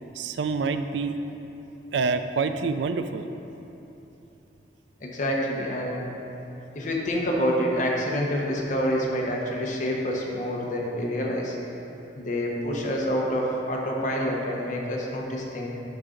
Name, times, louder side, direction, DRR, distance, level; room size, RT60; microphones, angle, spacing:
voice 1, 0.1-1.1 1.9-3.2, right 4 dB, 70° right, 9 dB, 0.4 m, -26 dB
voice 2, 5.0-6.1 6.7-11.6 12.1-15.7, equal, 45° left, -2 dB, 0.9 m, -27 dB
11.0 x 4.0 x 3.8 m, 3.0 s
head